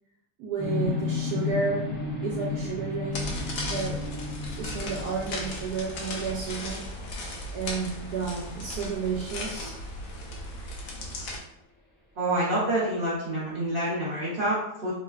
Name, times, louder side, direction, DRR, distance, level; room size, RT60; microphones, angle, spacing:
voice 1, 0.4-2.0 2.2-4.0 4.6-6.8 7.2-9.7, right 5 dB, 75° right, -3 dB, 1.1 m, -32 dB
sound 1, 0.6-9.5, left 4 dB, 10° left, 0.5 m, -34 dB
sound 2, 3.1-11.4, left 1 dB, 70° left, 0.9 m, -36 dB
voice 2, 12.2-14.9, right 1 dB, 55° right, -8 dB, 0.6 m, -27 dB
3.1 x 2.1 x 2.3 m, 0.80 s
omnidirectional pair, 1.7 m